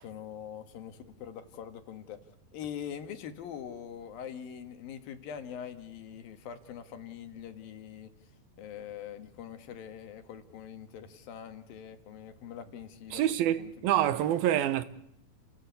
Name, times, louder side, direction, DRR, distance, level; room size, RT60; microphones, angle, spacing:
voice 1, 0.0-2.2 2.5-8.1 8.6-13.2 13.6-13.9, left 9 dB, 75° left, 3.4 m, -43 dB
voice 2, 13.1-14.8, right 12 dB, 80° right, 3.0 m, -26 dB
30.0 x 18.0 x 8.3 m
omnidirectional pair, 4.2 m